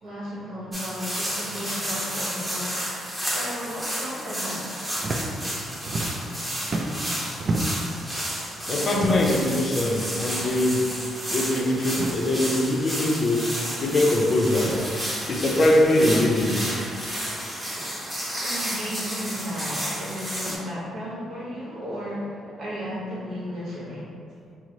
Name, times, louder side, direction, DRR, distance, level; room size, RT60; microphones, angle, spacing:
voice 1, 0.0-2.8 3.2-4.7 18.4-24.0, equal, 70° right, -7 dB, 1.0 m, -34 dB
sound 1, 0.7-20.6, equal, 10° right, 0.8 m, -31 dB
sound 2, 5.0-5.2 5.5-6.4 6.6-7.9 8.9-9.5 10.4-10.6 10.9-11.0 11.9-12.2 13.3-13.4 14.6-14.9 15.9-16.2, right 2 dB, 45° right, 0.3 m, -30 dB
voice 2, 8.7-10.9 11.3-13.5 13.8-14.8 15.3-16.7, left 1 dB, 50° left, 0 dB, 0.5 m, -22 dB
3.0 x 2.0 x 3.8 m, 2.3 s
cardioid pair, 90°, 0 cm